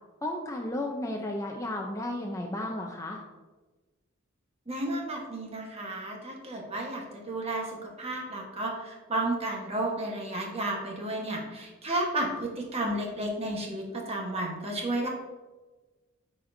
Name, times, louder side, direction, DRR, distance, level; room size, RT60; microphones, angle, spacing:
voice 1, 0.2-3.2, left 1 dB, 15° left, 1 dB, 0.5 m, -33 dB
voice 2, 4.7-7.0 7.3-15.1, right 1 dB, 30° right, 0 dB, 1.1 m, -32 dB
9.0 x 4.3 x 2.6 m, 1.2 s
head